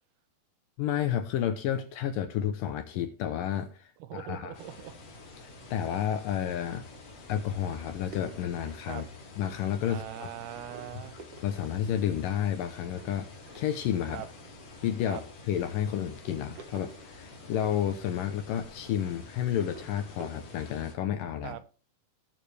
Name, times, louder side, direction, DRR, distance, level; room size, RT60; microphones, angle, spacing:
voice 1, 0.8-4.5 5.4-6.8 7.3-9.1 9.4-10.3 11.4-13.3 13.6-14.2 14.8-15.2 15.5-21.6, left 10 dB, 75° left, 8 dB, 2.2 m, -31 dB
voice 2, 4.0-5.0 8.9-9.0 9.9-11.2 14.1-14.3 15.0-15.2 21.4-21.6, right 12 dB, 80° right, 13 dB, 2.6 m, -41 dB
sound 1, 4.5-20.9, left 3 dB, 60° left, 4.2 m, -49 dB
sound 2, 5.6-9.4 9.9-10.2 10.5-19.2 19.5-20.5, right 5 dB, 60° right, 1.6 m, -52 dB
18.5 x 6.6 x 3.4 m, 0.36 s
omnidirectional pair, 4.5 m